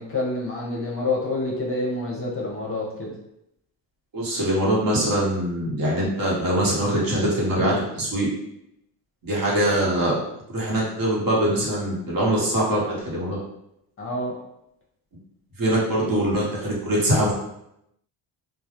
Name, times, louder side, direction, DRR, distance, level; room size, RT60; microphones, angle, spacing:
voice 1, 0.0-3.2 14.0-14.3, left 2 dB, 30° left, -3 dB, 0.7 m, -27 dB
voice 2, 4.1-8.3 9.2-10.1 10.5-13.4 15.6-17.3, right 1 dB, 45° right, -5 dB, 1.0 m, -23 dB
2.2 x 2.1 x 2.9 m, 0.81 s
cardioid pair, 85°, 46 cm